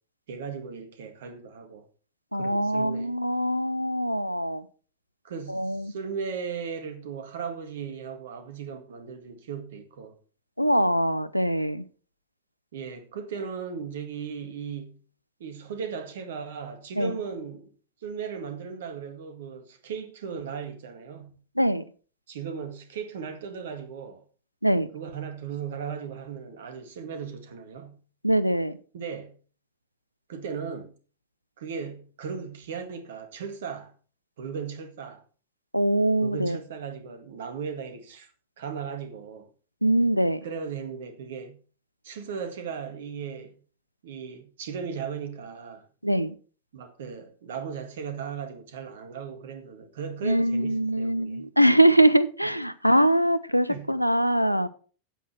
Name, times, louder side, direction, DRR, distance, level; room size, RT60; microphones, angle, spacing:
voice 1, 0.3-1.8 2.3-3.1 5.2-10.2 12.7-15.0 15.4-17.7 18.0-21.3 22.3-24.2 24.9-28.0 28.9-29.3 30.3-30.9 31.6-33.9 34.4-35.2 36.2-38.3 38.6-39.5 40.4-41.6 42.0-43.5 44.0-45.9 46.7-51.5 53.7-53.9, right 6 dB, 60° right, 1.8 m, -37 dB
voice 2, 2.3-4.6 5.5-5.9 10.6-11.8 17.0-17.1 21.6-21.8 24.6-24.9 28.2-28.8 35.7-36.6 39.8-40.4 46.0-46.3 50.2-54.7, right 1 dB, 90° left, 0.6 m, -23 dB
9.1 x 8.3 x 4.4 m
figure-of-eight pair, 90°, 0 cm